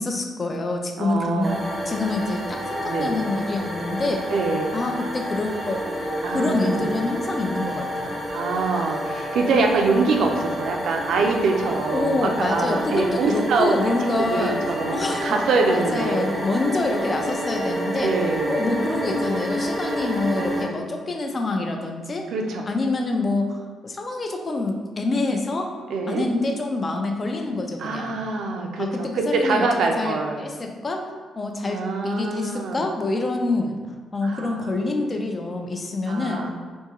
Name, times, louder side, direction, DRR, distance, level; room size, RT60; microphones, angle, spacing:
voice 1, 0.0-1.5 1.9-4.2 4.7-5.9 6.3-8.2 11.9-14.6 14.9-15.4 15.7-18.1 18.5-22.3 22.7-25.7 26.1-28.2 28.8-29.7 30.0-31.0 31.4-33.8 34.1-36.5, left 2 dB, 35° left, 3 dB, 0.4 m, -26 dB
voice 2, 1.0-1.6 2.8-3.1 4.3-4.7 6.2-6.9 8.3-13.8 14.0-16.4 18.0-18.6 22.3-22.6 25.9-26.3 27.8-30.4 31.6-32.8 34.2-34.8 36.1-36.5, right 3 dB, 70° right, 3 dB, 0.5 m, -24 dB
sound 1, 1.4-20.7, equal, 10° right, 0.6 m, -29 dB
3.5 x 2.7 x 3.0 m, 1.5 s
cardioid pair, 90°, 0 cm